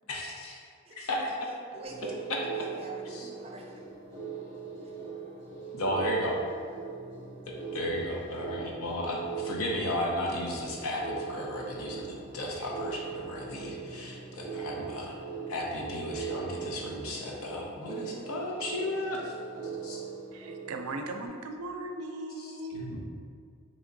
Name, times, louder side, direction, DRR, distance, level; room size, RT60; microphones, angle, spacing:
voice 1, 0.1-0.6 1.0-1.3 2.3-2.4 3.1-3.3 5.7-6.4 7.7-15.2 15.5-19.3 19.8-20.0 22.7-23.0, left 1 dB, 75° left, -1 dB, 0.7 m, -34 dB
voice 2, 1.7-3.9 4.8-5.0 6.0-6.1, right 2 dB, 30° right, 0 dB, 0.5 m, -44 dB
sound 1, 1.8-21.3, right 6 dB, 10° left, 1.2 m, -40 dB
voice 3, 20.3-22.9, right 2 dB, 85° right, 4 dB, 0.4 m, -38 dB
3.5 x 3.1 x 3.8 m, 2.1 s
head